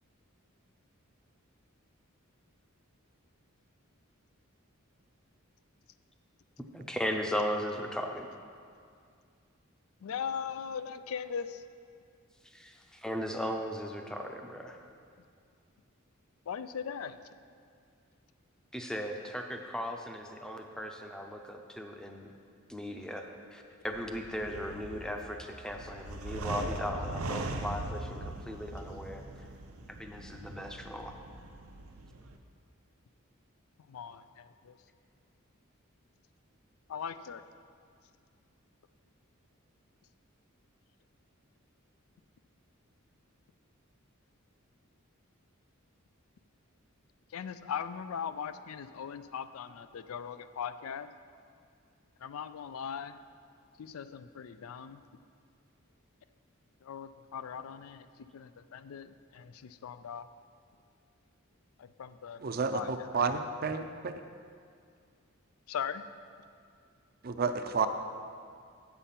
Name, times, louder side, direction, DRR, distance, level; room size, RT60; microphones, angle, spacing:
voice 1, 6.7-8.3 12.4-14.8 18.7-22.3 22.7-23.3 23.5-29.2 29.9-31.1, equal, 5° left, 3 dB, 0.6 m, -37 dB
voice 2, 10.0-11.6 16.5-17.2 33.9-34.8 36.9-37.4 47.3-51.1 52.2-53.2 53.8-55.0 56.8-58.1 58.3-60.3 61.8-62.4 62.7-63.1 65.7-66.0, left 7 dB, 80° left, 12 dB, 0.4 m, -39 dB
sound 1, 23.8-32.4, right 2 dB, 90° right, 0.7 m, -40 dB
voice 3, 62.4-64.2 67.2-67.9, right 4 dB, 45° right, 8 dB, 0.5 m, -31 dB
8.2 x 7.0 x 5.7 m, 2.3 s
head